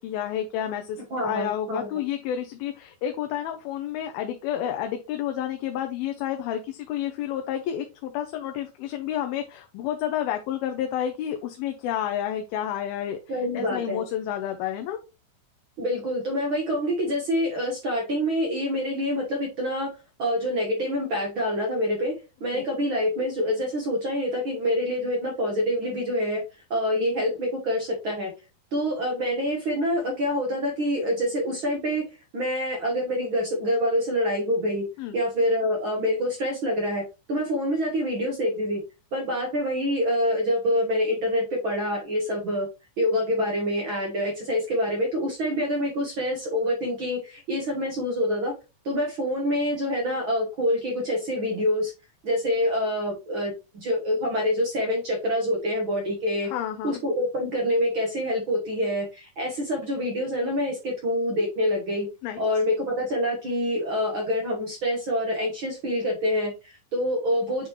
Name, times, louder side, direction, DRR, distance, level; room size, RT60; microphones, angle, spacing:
voice 1, 0.0-13.2 13.5-15.0 22.5-22.6 35.0-35.2 56.4-57.0 62.2-62.4, left 10 dB, 85° left, 5 dB, 2.5 m, -30 dB
voice 2, 1.1-1.9 13.3-14.0 15.8-19.9 20.2-22.1 22.4-26.4 26.7-28.3 28.7-34.8 35.1-37.0 37.3-38.8 39.1-42.7 43.0-48.5 48.8-51.9 52.2-56.5 56.8-62.1 62.4-67.7, equal, 65° right, -1 dB, 1.2 m, -26 dB
8.8 x 3.7 x 3.0 m, 0.28 s
omnidirectional pair, 4.3 m